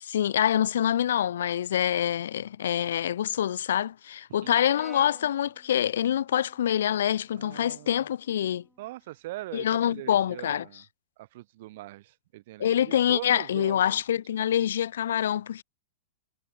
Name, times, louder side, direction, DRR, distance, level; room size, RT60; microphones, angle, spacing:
voice 1, 0.0-8.6 9.5-10.6 12.6-15.6, left 10 dB, 85° left, 0.7 m, -26 dB
Brass instrument, 4.7-9.0, right 2 dB, 5° right, 5.3 m, -54 dB
voice 2, 7.4-8.0 8.8-10.8 11.2-14.0, right 17 dB, 55° right, 1.4 m, -42 dB
supercardioid pair, 155°, 0 cm